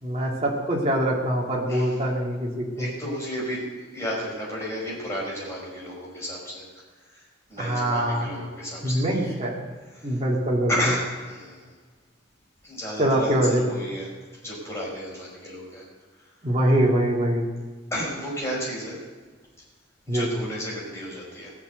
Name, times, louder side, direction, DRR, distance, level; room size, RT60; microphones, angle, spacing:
voice 1, 0.0-2.9 7.6-8.3 8.8-9.7 10.0-10.7 13.0-13.6 16.4-17.4 20.1-20.3, right 1 dB, 30° right, -2 dB, 2.7 m, -23 dB
voice 2, 1.7-2.0 2.8-6.7 7.1-9.4 9.9-10.2 10.7-11.7 12.6-14.1 14.4-15.8 17.9-19.0 20.1-21.5, equal, 15° left, -5 dB, 5.8 m, -32 dB
17.5 x 7.4 x 8.1 m, 1.4 s
head